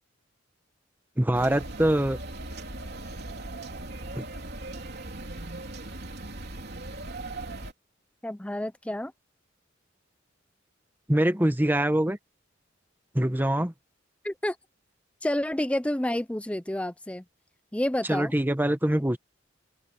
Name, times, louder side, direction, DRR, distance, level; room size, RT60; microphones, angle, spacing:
voice 1, 1.2-2.2 4.1-4.3 11.1-12.2 13.1-13.7 18.1-19.2, right 1 dB, 10° right, 1.1 m, -24 dB
sound 1, 1.3-7.7, right 2 dB, 55° right, 3.6 m, -38 dB
voice 2, 8.2-9.1 14.2-14.6 15.2-17.2 17.7-18.3, left 1 dB, 5° left, 0.5 m, -29 dB
open air
head